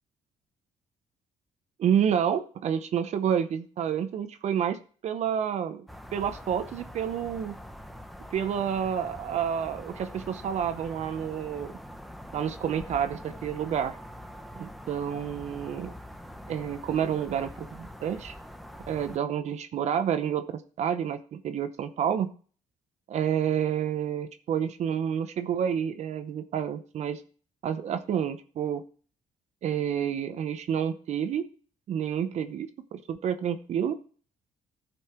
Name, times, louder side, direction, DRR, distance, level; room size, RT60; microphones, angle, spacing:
voice 1, 1.8-7.6 8.3-11.7 12.3-13.9 14.6-15.9 16.5-18.3 18.9-20.4 20.8-22.3 23.1-27.2 27.6-28.8 29.6-31.4 31.9-34.0, right 8 dB, 60° right, 10 dB, 0.7 m, -29 dB
sound 1, 5.9-19.2, equal, ahead, 0.8 m, -44 dB
14.0 x 5.4 x 4.3 m, 0.43 s
cardioid pair, 125°, 13 cm